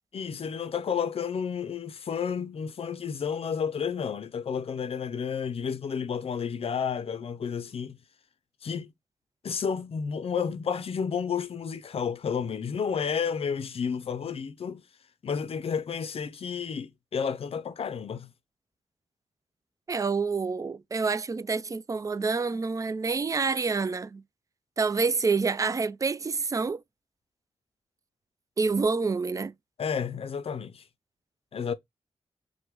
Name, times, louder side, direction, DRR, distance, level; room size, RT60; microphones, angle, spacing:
voice 1, 0.1-8.0 8.6-8.9 9.4-14.8 15.2-18.3 29.8-30.8 31.5-31.7, left 6 dB, 60° left, 0.5 m, -31 dB
voice 2, 19.9-24.2 24.8-26.8 28.6-29.5, right 4 dB, 30° right, 0.3 m, -27 dB
3.0 x 2.2 x 3.1 m
supercardioid pair, 40°, 11 cm